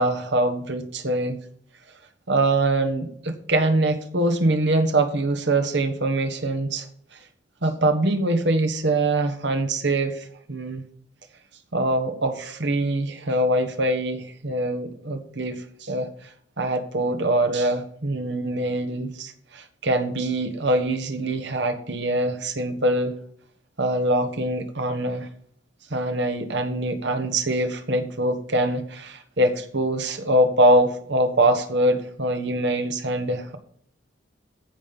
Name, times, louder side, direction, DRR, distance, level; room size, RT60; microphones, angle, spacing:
voice 1, 0.0-1.4 2.3-6.9 7.1-7.2 7.6-10.8 11.7-23.1 23.8-25.3 25.9-33.6, right 1 dB, 60° right, 7 dB, 1.2 m, -23 dB
14.5 x 5.3 x 5.6 m, 0.62 s
head